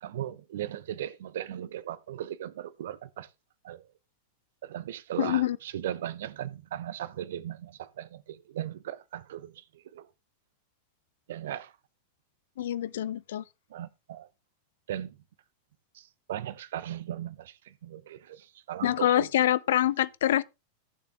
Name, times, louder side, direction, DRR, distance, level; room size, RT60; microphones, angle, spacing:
voice 1, 0.0-3.3 3.6-3.8 4.6-9.6 9.9-10.1 11.3-11.7 13.7-14.3 14.9-15.2 15.9-19.2, right 11 dB, 60° right, 0.8 m, -37 dB
voice 2, 5.2-5.6 12.6-13.4 18.8-20.4, left 12 dB, 60° left, 0.5 m, -25 dB
14.5 x 6.9 x 3.5 m
figure-of-eight pair, 90°, 0 cm